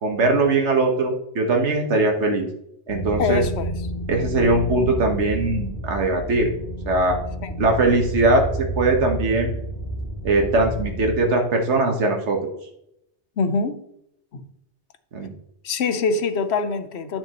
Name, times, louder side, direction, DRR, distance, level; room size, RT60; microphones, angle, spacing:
voice 1, 0.0-2.5 2.9-3.4 4.1-6.5 6.9-7.2 7.6-9.6 10.2-12.5 15.1-15.3, right 2 dB, 85° right, 1.5 m, -20 dB
sound 1, 2.9-11.1, right 1 dB, 40° left, 2.5 m, -30 dB
voice 2, 3.2-3.8 4.8-4.9 7.4-7.5 13.4-13.8 14.3-14.5 15.6-17.2, left 4 dB, 70° left, 1.0 m, -24 dB
10.5 x 6.0 x 3.0 m
omnidirectional pair, 1.2 m